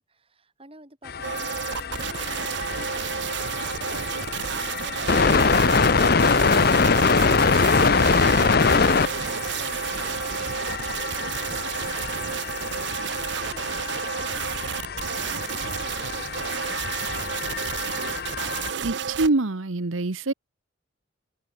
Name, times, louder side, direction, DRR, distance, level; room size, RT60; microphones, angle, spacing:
voice 1, 0.0-16.6, right 1 dB, 30° right, 7.7 m, -52 dB
sound 1, 1.1-18.7, left 4 dB, 50° left, 0.7 m, -24 dB
sound 2, 1.2-19.3, right 7 dB, 60° right, 0.7 m, -31 dB
voice 2, 18.8-20.3, right 2 dB, 85° right, 1.1 m, -25 dB
head